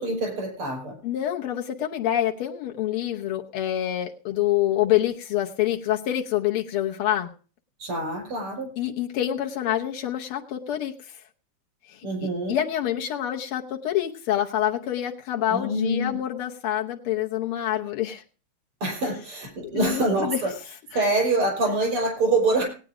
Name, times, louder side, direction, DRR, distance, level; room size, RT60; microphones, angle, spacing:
voice 1, 0.0-1.0 7.8-8.7 12.0-12.6 15.5-16.1 18.8-20.5 20.9-22.6, right 2 dB, 85° right, 2 dB, 6.1 m, -25 dB
voice 2, 1.0-7.3 8.8-11.2 11.9-18.2 19.7-20.4, left 12 dB, 85° left, 0 dB, 1.9 m, -27 dB
18.0 x 9.1 x 4.9 m, 0.38 s
omnidirectional pair, 2.4 m